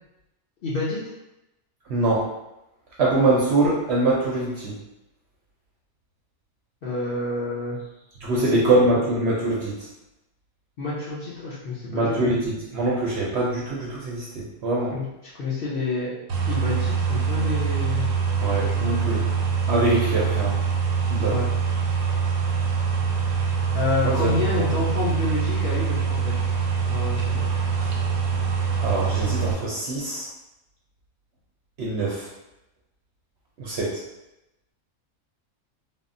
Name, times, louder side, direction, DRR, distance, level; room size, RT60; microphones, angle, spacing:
voice 1, 0.6-1.0 6.8-7.8 8.3-8.5 10.8-12.3 14.9-18.1 21.2-21.5 23.7-26.5 26.9-27.6, left 3 dB, 55° left, -7 dB, 0.7 m, -29 dB
voice 2, 1.9-2.3 3.0-4.7 8.2-9.7 11.9-14.9 18.4-19.2 19.7-20.5 21.1-21.3 24.0-24.3 28.8-30.3 31.8-32.3 33.6-34.0, right 2 dB, 65° right, -4 dB, 0.7 m, -23 dB
sound 1, 16.3-29.5, right 6 dB, 90° right, 1.0 m, -24 dB
3.5 x 2.0 x 2.5 m, 0.92 s
omnidirectional pair, 1.5 m